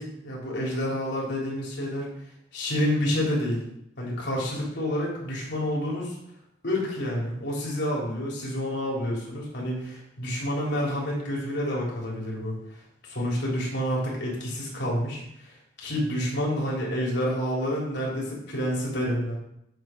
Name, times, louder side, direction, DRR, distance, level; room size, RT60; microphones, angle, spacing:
voice 1, 0.0-2.1 2.5-3.6 4.0-6.2 6.6-12.6 13.1-19.4, equal, 60° left, -4 dB, 3.6 m, -29 dB
9.6 x 7.8 x 4.6 m, 0.77 s
head